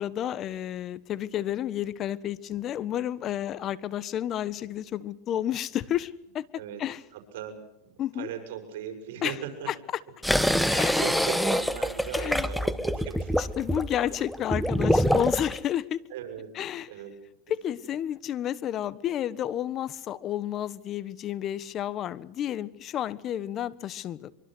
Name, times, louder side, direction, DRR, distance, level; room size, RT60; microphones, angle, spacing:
voice 1, 0.0-6.5 6.8-7.0 8.0-8.3 9.2-9.3 10.8-11.0 12.2-12.5 13.4-16.0 16.6-16.9 17.5-24.3, left 11 dB, 35° left, 18 dB, 1.2 m, -31 dB
voice 2, 7.1-9.7 10.7-13.5 16.1-16.5 16.9-17.2 17.7-17.9, right 9 dB, 70° right, 6 dB, 6.2 m, -39 dB
sound 1, 10.2-15.6, equal, ahead, 1.2 m, -25 dB
24.0 x 24.0 x 6.3 m, 0.82 s
supercardioid pair, 120°, 0 cm